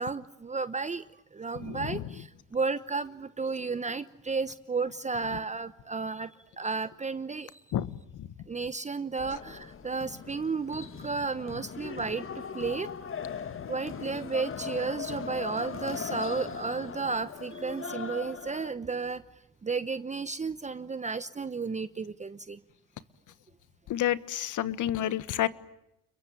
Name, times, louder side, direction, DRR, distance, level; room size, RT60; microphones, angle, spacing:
voice 1, 0.0-7.6 8.5-12.9 13.7-19.2 19.6-22.6, right 4 dB, 20° right, 13 dB, 1.0 m, -33 dB
sound 1, 9.2-18.7, left 6 dB, 35° left, 1.9 m, -39 dB
voice 2, 23.9-25.5, left 12 dB, 60° left, 15 dB, 1.6 m, -28 dB
30.0 x 22.5 x 8.8 m, 0.83 s
cardioid pair, 95°, 34 cm